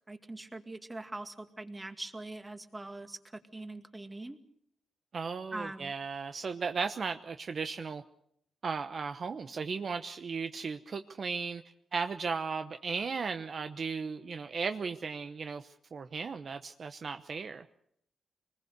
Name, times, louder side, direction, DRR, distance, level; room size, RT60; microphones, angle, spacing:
voice 1, 0.1-3.2 3.5-4.4 5.5-5.9, right 2 dB, 15° right, 7 dB, 2.2 m, -42 dB
voice 2, 5.1-8.0 8.6-11.6 11.9-17.6, right 5 dB, 50° right, 8 dB, 0.9 m, -36 dB
25.5 x 20.5 x 6.7 m, 0.71 s
cardioid pair, 95°, 0 cm